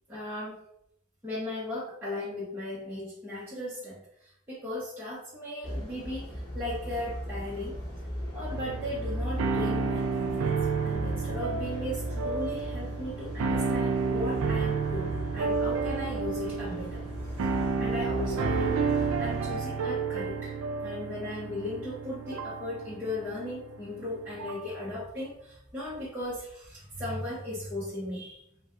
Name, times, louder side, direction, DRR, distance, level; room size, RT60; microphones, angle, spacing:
voice 1, 0.1-0.6 1.2-7.8 8.3-10.6 10.8-17.0 17.5-18.9 19.2-20.5 20.8-28.4, left 1 dB, 10° right, -10 dB, 0.8 m, -37 dB
sound 1, 5.6-19.6, equal, 20° left, 1.2 m, -37 dB
sound 2, 8.5-24.8, right 5 dB, 70° right, 0.3 m, -31 dB
4.1 x 2.2 x 2.4 m, 0.73 s
head